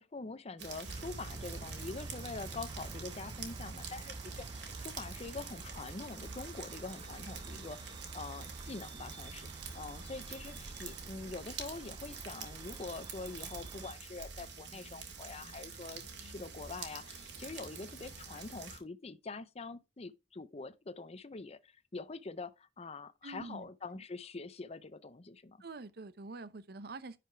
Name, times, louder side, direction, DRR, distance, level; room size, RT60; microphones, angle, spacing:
voice 1, 0.0-9.5 9.7-25.6, left 3 dB, 35° left, 0.6 m, -45 dB
sound 1, 0.6-18.8, right 5 dB, 85° right, 2.4 m, -47 dB
sound 2, 0.9-13.9, right 3 dB, 25° right, 0.4 m, -48 dB
voice 2, 23.2-24.0 25.6-27.2, right 3 dB, 60° right, 0.7 m, -46 dB
10.5 x 5.1 x 4.4 m
head